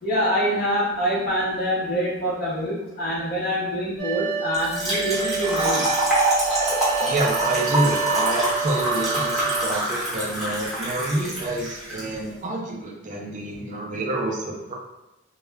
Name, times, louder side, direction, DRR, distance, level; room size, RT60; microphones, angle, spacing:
voice 1, 0.0-5.9, equal, 50° left, -6 dB, 0.7 m, -25 dB
sound 1, 4.0-9.7, right 6 dB, 75° right, 0.8 m, -29 dB
Trickle dribble / Fill (with liquid), 4.5-12.0, right 1 dB, ahead, 0.8 m, -25 dB
voice 2, 7.0-14.7, right 1 dB, 40° right, -1 dB, 0.5 m, -27 dB
2.2 x 2.0 x 3.3 m, 0.94 s
head